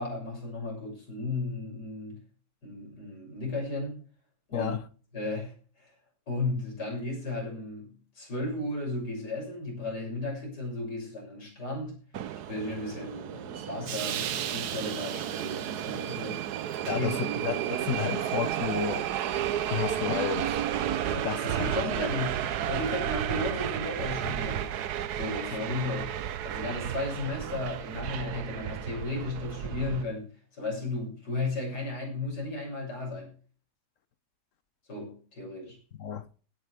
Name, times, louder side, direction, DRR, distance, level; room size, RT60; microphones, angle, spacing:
voice 1, 0.0-2.2 2.6-4.0 4.5-4.7 5.1-5.9 6.3-12.0 12.5-16.4 16.8-17.1 17.4-17.6 21.5-24.7 25.1-26.1 26.4-33.3 34.9-35.8, left 2 dB, 75° left, 7.2 m, -34 dB
voice 2, 4.5-4.8 16.9-19.1 19.7-20.6 21.1-21.9 36.0-36.3, left 8 dB, 55° left, 1.1 m, -32 dB
Subway metro underground, 12.1-30.0, right 10 dB, 70° right, 1.3 m, -32 dB
16.5 x 9.6 x 3.4 m
omnidirectional pair, 1.8 m